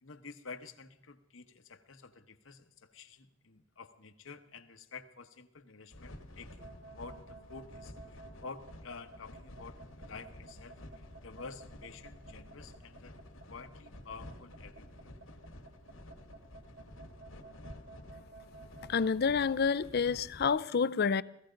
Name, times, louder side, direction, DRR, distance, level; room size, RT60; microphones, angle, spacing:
voice 1, 0.0-13.1 13.5-15.1, left 4 dB, 70° left, 1.1 m, -50 dB
sound 1, 5.9-20.5, left 1 dB, 90° left, 2.2 m, -51 dB
sound 2, 6.5-19.1, right 3 dB, 65° right, 3.6 m, -53 dB
voice 2, 18.9-21.2, left 5 dB, 55° left, 0.5 m, -28 dB
16.5 x 15.5 x 5.2 m
head